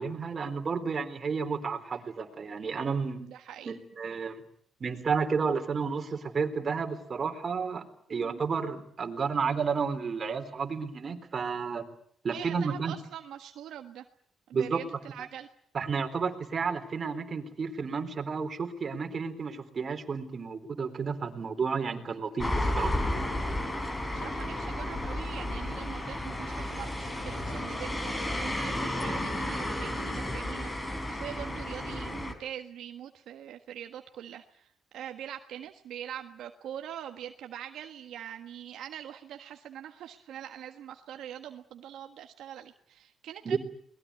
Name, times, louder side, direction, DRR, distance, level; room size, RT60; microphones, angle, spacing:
voice 1, 0.0-3.2 3.7-4.4 4.8-11.8 12.2-12.9 14.5-14.8 15.2-15.3 15.7-22.9 43.5-43.6, right 5 dB, 40° right, 6 dB, 3.9 m, -31 dB
voice 2, 3.1-3.8 8.1-8.4 12.3-14.0 14.5-15.5 24.1-43.6, right 10 dB, 80° right, 5 dB, 1.5 m, -43 dB
sound 1, 22.4-32.3, left 1 dB, 20° left, 4.4 m, -32 dB
22.5 x 20.0 x 9.7 m, 0.65 s
cardioid pair, 90°, 0 cm